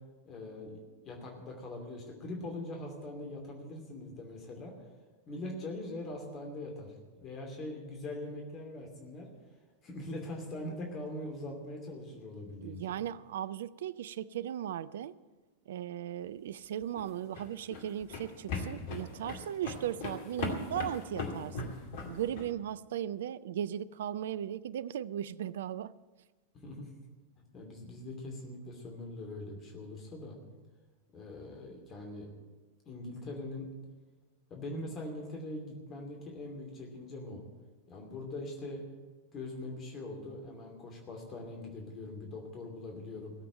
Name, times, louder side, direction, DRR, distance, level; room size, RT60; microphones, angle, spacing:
voice 1, 0.2-0.8 1.0-4.8 5.3-6.9 7.2-9.3 9.8-12.9 26.5-26.9 27.5-30.4 31.1-32.3 32.9-33.6 34.5-37.4 37.9-38.8 39.3-43.3, left 2 dB, 30° left, 1 dB, 2.7 m, -42 dB
voice 2, 12.6-15.1 15.7-21.7 22.1-25.9, right 10 dB, 60° right, 18 dB, 0.4 m, -37 dB
sound 1, 16.8-22.5, left 4 dB, 50° left, 2.3 m, -39 dB
17.0 x 7.8 x 8.8 m, 1.3 s
figure-of-eight pair, 90°, 0 cm